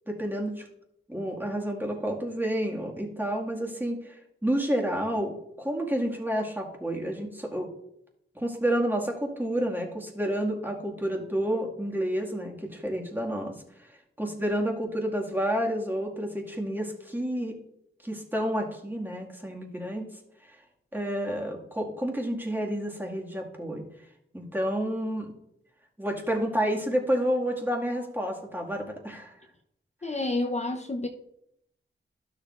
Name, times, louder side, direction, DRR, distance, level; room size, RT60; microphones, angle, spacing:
voice 1, 0.1-0.7 1.1-7.7 8.4-17.5 18.0-20.1 20.4-20.6 20.9-23.9 24.3-25.3 26.0-29.4, equal, 10° right, 0 dB, 2.0 m, -30 dB
voice 2, 30.0-31.1, left 2 dB, 35° left, 2 dB, 0.8 m, -29 dB
12.0 x 6.6 x 2.5 m, 0.77 s
cardioid pair, 55°, 21 cm